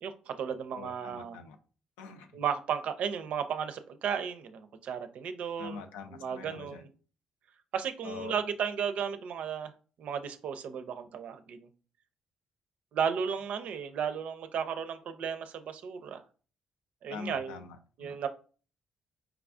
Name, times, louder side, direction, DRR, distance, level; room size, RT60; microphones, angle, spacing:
voice 1, 0.0-1.4 2.3-5.8 6.1-6.9 7.7-9.7 10.0-11.7 12.9-16.2 17.0-17.6 18.0-18.3, right 7 dB, 65° right, 0.4 m, -34 dB
voice 2, 0.7-1.6 2.0-2.3 5.6-6.8 8.0-8.4 17.1-18.2, left 5 dB, 85° left, 0.4 m, -44 dB
4.6 x 2.3 x 2.4 m
hypercardioid pair, 50°, 2 cm